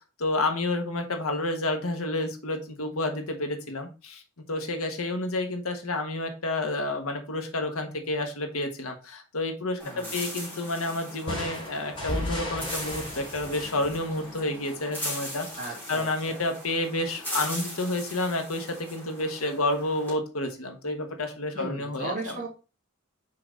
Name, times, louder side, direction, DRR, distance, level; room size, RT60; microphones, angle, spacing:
voice 1, 0.2-4.2 4.5-15.5 15.9-22.3, left 2 dB, 80° left, 5 dB, 1.3 m, -30 dB
sound 1, 9.8-20.1, equal, 10° left, 2.9 m, -39 dB
voice 2, 9.8-10.2 15.5-16.4 21.5-22.5, right 2 dB, 40° right, -2 dB, 2.7 m, -37 dB
sound 2, 11.3-14.9, left 1 dB, 25° left, 3.4 m, -35 dB
5.8 x 4.8 x 4.0 m, 0.32 s
head